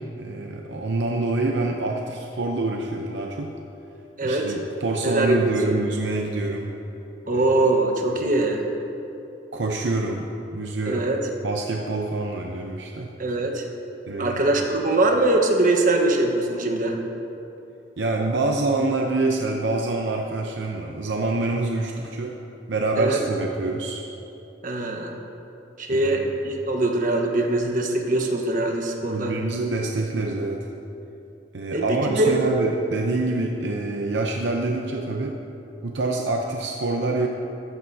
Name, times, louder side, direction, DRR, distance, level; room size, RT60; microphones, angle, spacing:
voice 1, 0.0-3.5 4.2-6.8 7.3-7.5 9.5-11.1 11.4-13.1 14.1-14.5 18.0-22.4 22.7-24.1 25.9-26.3 29.0-30.7 31.5-35.4 35.8-37.3, right 2 dB, 70° right, 1 dB, 0.8 m, -26 dB
voice 2, 4.2-4.5 5.0-5.8 7.3-8.6 10.9-11.2 13.2-13.7 14.2-17.0 23.0-23.2 24.6-25.2 25.8-29.3 31.7-32.4, right 2 dB, 50° right, 1 dB, 1.4 m, -22 dB
14.0 x 14.0 x 2.8 m, 2.9 s
head